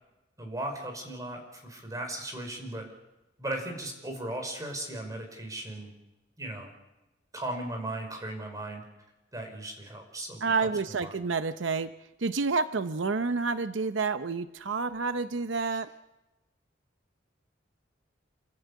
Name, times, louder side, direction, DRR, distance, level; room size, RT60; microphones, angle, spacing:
voice 1, 0.4-2.8 3.4-5.9 6.4-6.7 7.3-8.8 9.3-11.1 15.7-15.8, right 1 dB, 20° right, 3 dB, 5.3 m, -37 dB
voice 2, 10.4-11.9 12.2-15.9, right 4 dB, 85° right, 11 dB, 0.7 m, -29 dB
28.5 x 14.5 x 8.4 m, 1.0 s
head